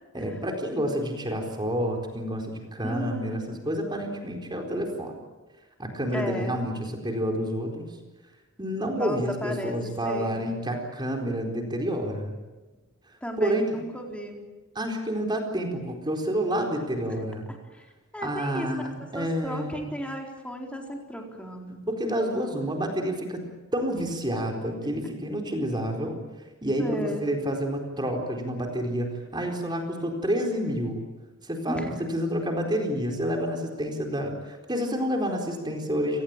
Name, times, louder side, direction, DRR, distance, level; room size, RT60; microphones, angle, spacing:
voice 1, 0.1-5.2 5.8-8.0 8.6-12.4 13.4-13.8 14.7-17.5 18.2-19.9 21.9-23.5 23.7-26.2 26.6-31.0 31.4-36.2, equal, 20° right, 3 dB, 4.3 m, -29 dB
voice 2, 2.8-3.6 6.1-6.6 8.9-10.4 13.2-14.4 17.0-17.2 17.7-17.9 18.1-18.8 19.1-21.9 26.8-27.3 31.7-32.0, equal, 5° left, 1 dB, 4.3 m, -35 dB
29.5 x 19.0 x 9.0 m, 1.2 s
head